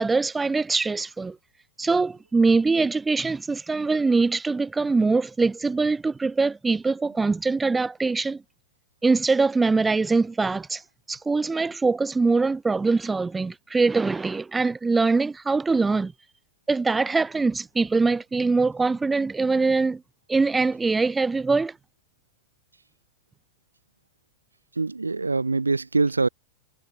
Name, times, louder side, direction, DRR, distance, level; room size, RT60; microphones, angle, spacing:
voice 1, 0.0-1.4 1.8-8.4 9.0-10.8 11.1-16.1 16.7-20.0 20.3-21.7, right 4 dB, 10° right, 3.7 m, -23 dB
voice 2, 24.8-26.3, right 3 dB, 80° right, 5.1 m, -23 dB
figure-of-eight pair, 90°, 0 cm